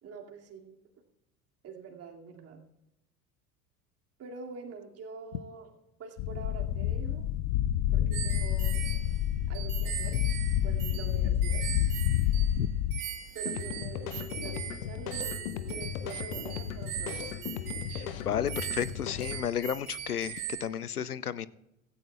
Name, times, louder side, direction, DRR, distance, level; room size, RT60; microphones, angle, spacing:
voice 1, 0.0-0.7 1.6-2.6 4.2-5.7 6.0-7.2 7.9-8.8 9.5-10.2 10.6-11.8 13.3-17.3, right 5 dB, 35° right, 1 dB, 2.5 m, -45 dB
sound 1, 6.2-13.0, left 12 dB, 35° left, 0.4 m, -28 dB
sound 2, 8.1-12.6 12.9-20.7, right 11 dB, 55° right, 1.6 m, -40 dB
sound 3, 13.5-19.4, left 9 dB, 65° left, 0.9 m, -37 dB
voice 2, 17.9-21.5, left 9 dB, 90° left, 20 dB, 0.6 m, -33 dB
16.5 x 15.5 x 2.4 m, 0.87 s
figure-of-eight pair, 75°, 44 cm